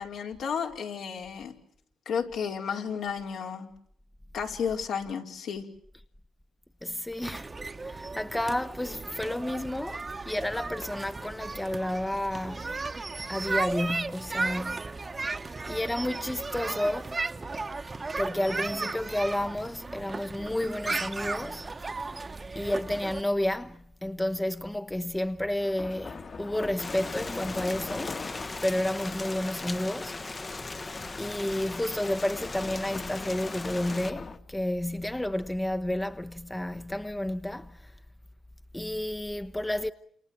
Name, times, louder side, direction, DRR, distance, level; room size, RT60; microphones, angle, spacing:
voice 1, 0.0-1.5 2.1-3.7 4.3-5.6, left 6 dB, 75° left, 4.6 m, -32 dB
voice 2, 6.8-7.5 7.8-12.7 13.3-15.1 15.7-17.2 18.2-21.7 22.5-28.2 28.6-30.2 31.2-37.9 38.7-39.9, left 1 dB, 10° left, 1.0 m, -31 dB
sound 1, 7.2-23.2, right 3 dB, 30° right, 1.3 m, -35 dB
sound 2, 25.6-34.4, left 4 dB, 40° left, 2.1 m, -43 dB
Rain, 26.8-34.1, left 3 dB, 25° left, 1.2 m, -38 dB
29.0 x 28.0 x 6.2 m
cardioid pair, 85°, 0 cm